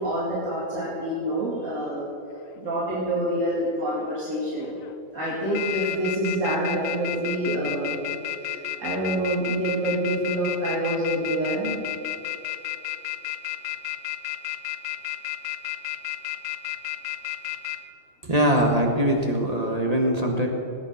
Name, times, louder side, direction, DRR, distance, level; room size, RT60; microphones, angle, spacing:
voice 1, 0.0-2.1 2.6-4.8 5.1-8.0 8.4-11.8, right 1 dB, 75° right, -8 dB, 2.9 m, -27 dB
sound 1, 2.5-2.8 3.5-4.2 4.6-4.9 5.3-17.8, left 13 dB, 75° left, 1.2 m, -32 dB
voice 2, 18.2-20.5, right 1 dB, 30° right, 1 dB, 1.5 m, -22 dB
20.0 x 8.7 x 5.7 m, 2.7 s
omnidirectional pair, 1.4 m